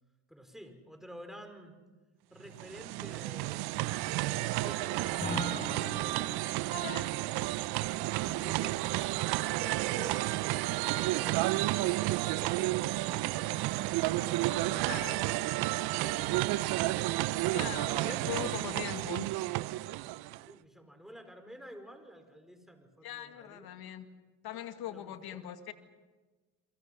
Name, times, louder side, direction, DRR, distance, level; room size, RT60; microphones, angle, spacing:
voice 1, 0.3-1.8 2.3-6.1 8.2-11.5 17.5-19.0 20.5-23.7 24.5-25.4, equal, ahead, 6 dB, 5.3 m, -50 dB
sound 1, 2.5-20.5, right 18 dB, 65° right, 0.7 m, -31 dB
Acoustic guitar / Strum, 5.2-8.4, left 1 dB, 20° left, 5.5 m, -41 dB
voice 2, 6.7-7.1 8.3-8.7 14.9-15.2 17.5-19.3 23.0-24.1 24.4-25.7, left 11 dB, 60° left, 8 dB, 2.1 m, -41 dB
30.0 x 23.0 x 5.6 m, 1.3 s
hypercardioid pair, 65°, 41 cm